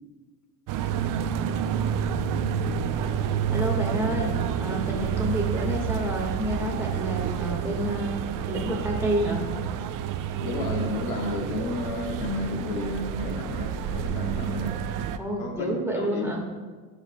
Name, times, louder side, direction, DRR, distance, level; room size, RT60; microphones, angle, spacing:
sound 1, 0.7-15.2, right 8 dB, 50° right, 0.6 m, -29 dB
voice 1, 3.5-8.2 8.5-9.4 15.2-16.4, equal, 5° right, -2 dB, 1.6 m, -29 dB
voice 2, 10.2-14.8 15.4-16.2, left 2 dB, 65° left, 2 dB, 1.5 m, -32 dB
15.0 x 5.0 x 2.2 m, 1.4 s
supercardioid pair, 105°, 42 cm